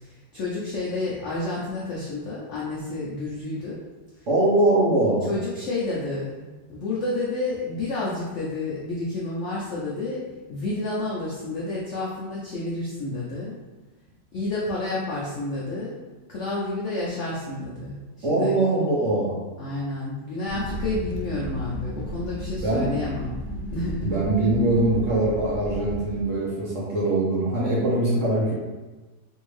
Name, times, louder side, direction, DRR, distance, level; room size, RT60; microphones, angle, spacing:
voice 1, 0.0-3.8 5.2-6.4 6.7-13.6 14.3-16.0 16.3-18.6 19.6-23.4 23.7-24.2, left 2 dB, 75° left, -5 dB, 0.6 m, -30 dB
voice 2, 4.3-5.3 18.2-19.4 22.6-22.9 24.0-28.5, right 2 dB, 55° right, -6 dB, 0.9 m, -22 dB
sound 1, 20.5-26.2, equal, 90° right, 1.3 m, -34 dB
3.4 x 2.6 x 3.1 m, 1.2 s
omnidirectional pair, 1.9 m